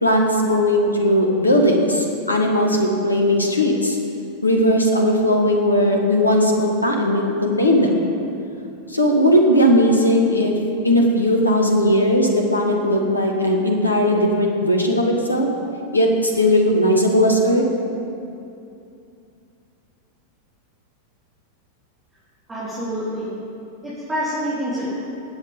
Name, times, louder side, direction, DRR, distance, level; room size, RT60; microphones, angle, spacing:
voice 1, 0.0-4.0 4.4-8.0 8.9-10.5 10.8-15.5 15.9-17.6, equal, 85° left, 2 dB, 1.6 m, -18 dB
voice 2, 22.5-23.4 23.8-24.9, equal, 15° right, -11 dB, 3.6 m, -27 dB
19.5 x 8.0 x 5.2 m, 2.6 s
figure-of-eight pair, 90°, 0 cm